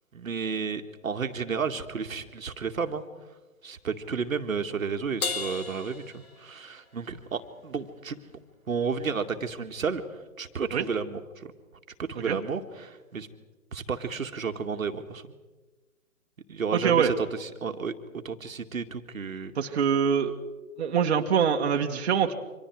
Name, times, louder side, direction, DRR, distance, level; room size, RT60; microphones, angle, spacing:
voice 1, 0.1-3.0 3.6-8.2 8.7-11.5 12.1-13.3 13.7-15.3 16.5-17.9 18.2-19.5, right 5 dB, 70° right, 6 dB, 2.0 m, -32 dB
Crash cymbal, 5.2-6.9, left 4 dB, 80° left, 3.0 m, -34 dB
voice 2, 16.7-17.1 19.6-20.4 20.8-22.3, right 7 dB, 50° right, 3 dB, 1.8 m, -24 dB
29.5 x 25.5 x 4.7 m, 1.2 s
figure-of-eight pair, 145°, 42 cm